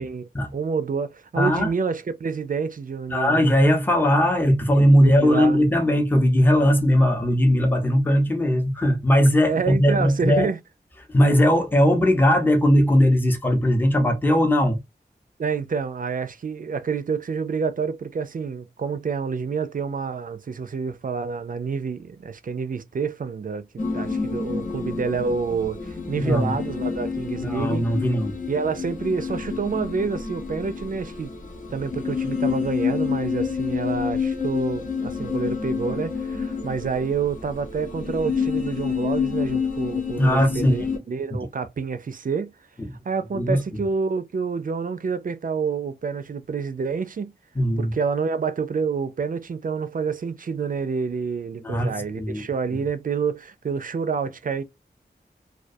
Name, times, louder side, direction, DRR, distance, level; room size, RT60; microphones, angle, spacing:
voice 1, 0.5-3.6 5.0-5.6 9.5-10.6 15.4-27.8 28.5-31.3 31.7-42.5 43.1-47.3 47.8-54.6, right 5 dB, 50° right, 0.4 m, -28 dB
voice 2, 1.4-1.7 3.1-10.5 11.1-14.8 26.2-26.5 27.4-28.4 40.2-40.9 41.3-41.4 42.8-43.0 43.3-43.8 47.5-47.9 51.6-52.5 52.7-52.8, equal, 10° left, 0.7 m, -19 dB
sound 1, 23.8-41.0, left 5 dB, 50° left, 0.9 m, -28 dB
2.3 x 2.2 x 2.6 m
cardioid pair, 40°, 17 cm